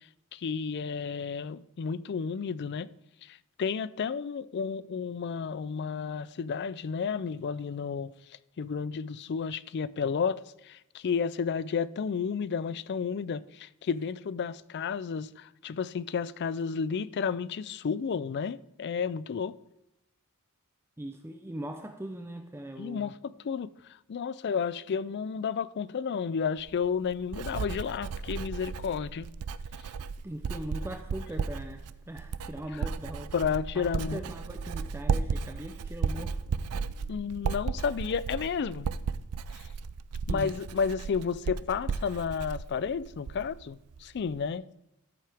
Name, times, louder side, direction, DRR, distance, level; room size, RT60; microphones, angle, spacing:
voice 1, 0.3-2.9 3.2-8.1 8.6-19.5 22.8-23.7 24.1-29.3 33.3-34.2 37.1-38.9 39.5-39.7 40.3-44.6, left 6 dB, 50° left, 0.4 m, -32 dB
voice 2, 21.0-23.1 30.2-33.3 33.7-36.4 40.3-40.5, right 1 dB, 10° right, 0.5 m, -40 dB
Writing, 26.6-43.6 43.9-44.4, right 5 dB, 90° right, 0.4 m, -35 dB
13.5 x 7.5 x 3.5 m
head